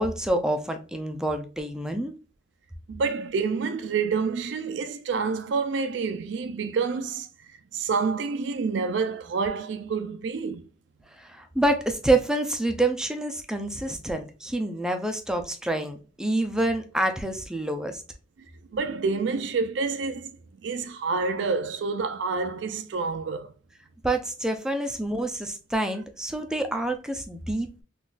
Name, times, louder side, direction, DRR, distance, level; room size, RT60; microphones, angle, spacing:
voice 1, 0.0-2.2 11.2-18.0 24.0-27.8, right 1 dB, 5° right, 0.4 m, -27 dB
voice 2, 2.9-7.3 7.7-10.7 18.7-20.4 20.6-23.5, right 4 dB, 70° right, 0.4 m, -28 dB
3.8 x 2.4 x 2.4 m
head